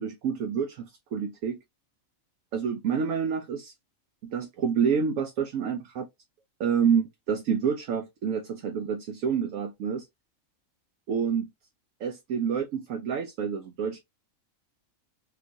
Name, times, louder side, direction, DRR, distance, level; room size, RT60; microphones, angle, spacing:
voice 1, 0.0-1.6 2.5-3.7 4.2-6.1 6.6-10.1 11.1-11.5 12.0-14.0, right 7 dB, 75° right, 1.0 m, -28 dB
3.7 x 2.4 x 2.6 m
omnidirectional pair, 1.4 m